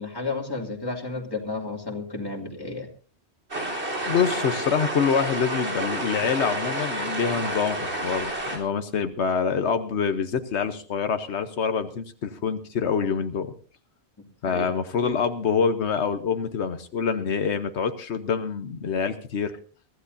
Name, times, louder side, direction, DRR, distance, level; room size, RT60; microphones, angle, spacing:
voice 1, 0.0-2.9 14.4-14.7, left 3 dB, 20° left, 1 dB, 2.5 m, -32 dB
sound 1, 3.5-8.6, right 1 dB, 75° right, 3.9 m, -29 dB
voice 2, 4.1-13.5 14.4-19.6, left 6 dB, 85° left, 9 dB, 1.2 m, -26 dB
23.5 x 14.5 x 2.6 m, 0.39 s
omnidirectional pair, 1.1 m